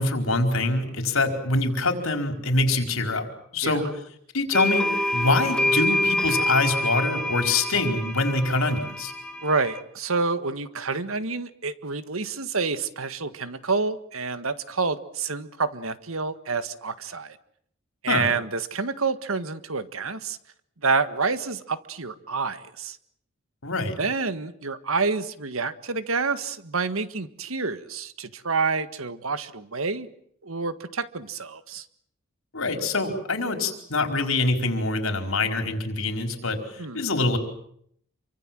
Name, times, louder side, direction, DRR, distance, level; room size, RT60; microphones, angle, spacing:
voice 1, 0.0-3.3 3.5-3.8 4.3-9.1 18.1-18.3 23.6-24.0 32.5-36.6 36.9-37.4, left 2 dB, 75° left, 6 dB, 4.8 m, -24 dB
sound 1, 4.5-9.8, left 1 dB, 5° left, 2.2 m, -26 dB
voice 2, 9.4-17.4 18.0-20.4 20.8-23.0 24.0-30.1 30.4-31.8 36.8-37.0, right 4 dB, 80° right, 12 dB, 1.7 m, -28 dB
27.5 x 24.5 x 7.7 m, 0.67 s
head